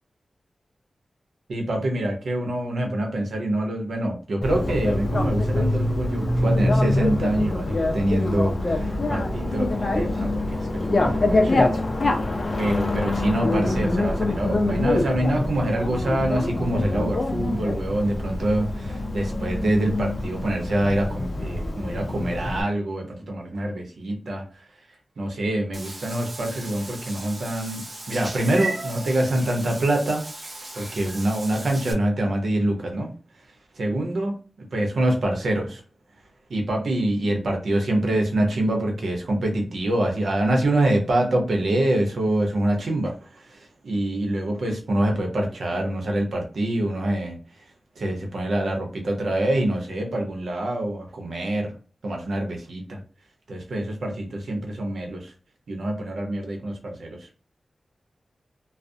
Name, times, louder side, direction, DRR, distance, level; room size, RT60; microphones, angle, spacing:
voice 1, 1.5-11.8 12.6-24.4 25.2-30.2 30.7-33.1 33.7-34.3 34.7-35.8 36.5-47.4 48.0-51.7 52.0-53.0 53.5-55.3 55.7-57.3, right 1 dB, 80° right, 2 dB, 0.7 m, -25 dB
Bicycle, 4.4-22.6, left 2 dB, 40° left, 0.4 m, -25 dB
Meow / Water / Bathtub (filling or washing), 25.7-31.9, right 2 dB, 30° right, 0.5 m, -36 dB
2.4 x 2.0 x 2.5 m, 0.38 s
wide cardioid pair, 130°, 0 cm